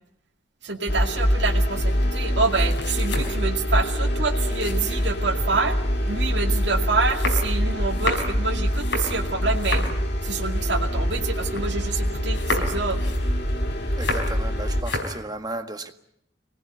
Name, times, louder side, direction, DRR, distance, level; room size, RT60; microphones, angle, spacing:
voice 1, 0.6-5.8 6.1-9.8 10.2-13.0, right 4 dB, 75° right, 2.3 m, -27 dB
sound 1, 0.9-14.8, equal, 60° left, 3.2 m, -25 dB
sound 2, 1.6-5.6 6.1-11.9 12.1-14.5 14.7-15.2, left 2 dB, 85° left, 4.9 m, -32 dB
voice 2, 14.0-15.9, right 2 dB, 20° right, 1.7 m, -34 dB
24.5 x 19.0 x 9.6 m
head